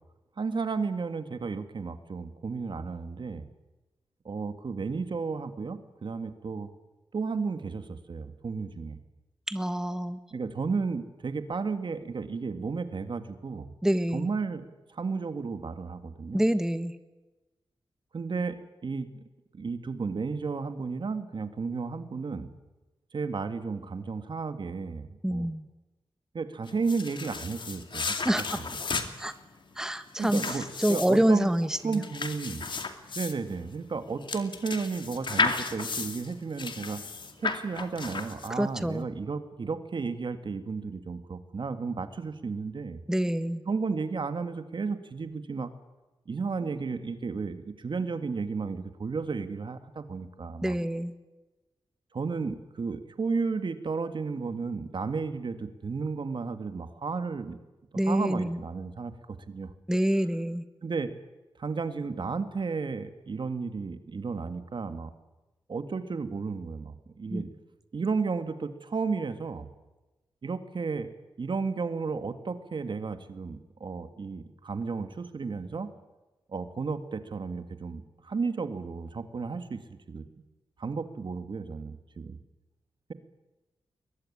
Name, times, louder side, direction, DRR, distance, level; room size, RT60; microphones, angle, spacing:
voice 1, 0.4-3.5 4.2-6.7 7.1-9.0 10.3-13.7 14.1-14.6 14.9-16.4 18.1-18.6 18.8-19.2 19.5-22.5 23.1-25.5 26.3-28.3 30.2-31.5 31.8-32.7 33.1-37.1 37.4-43.0 43.7-45.7 46.3-50.8 52.1-57.6 58.0-59.7 60.8-61.1 61.6-65.1 65.7-67.5 67.9-69.7 70.4-71.1 71.4-75.9 76.5-80.3 80.8-82.4, right 4 dB, 60° right, 9 dB, 2.0 m, -33 dB
voice 2, 9.5-10.2 13.8-14.3 16.3-16.9 25.2-25.7 28.2-28.6 29.2-29.3 29.8-32.0 38.6-39.1 43.1-43.6 50.6-51.1 58.0-58.6 59.9-60.6 67.3-67.4, right 1 dB, 5° right, 10 dB, 1.4 m, -27 dB
sound 1, 26.7-38.8, left 4 dB, 60° left, 2.3 m, -34 dB
22.0 x 21.0 x 9.9 m, 1.1 s
cardioid pair, 70°, 9 cm